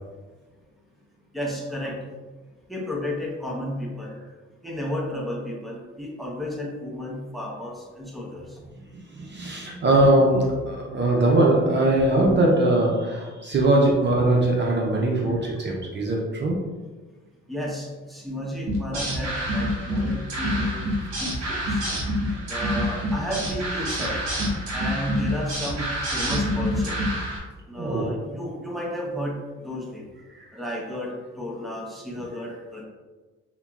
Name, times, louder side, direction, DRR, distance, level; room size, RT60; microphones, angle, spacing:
voice 1, 1.3-2.0 2.7-4.2 4.6-8.4 17.5-20.8 21.2-21.8 22.5-24.2 24.7-27.0 27.7-30.1 30.5-32.8, left 1 dB, ahead, -2 dB, 0.8 m, -32 dB
voice 2, 8.9-16.6 22.2-22.4 27.8-28.2 30.3-30.5, right 1 dB, 35° right, -1 dB, 0.5 m, -21 dB
sound 1, 18.7-27.4, equal, 60° right, 1.3 m, -27 dB
5.6 x 2.1 x 2.3 m, 1.3 s
cardioid pair, 90°, 30 cm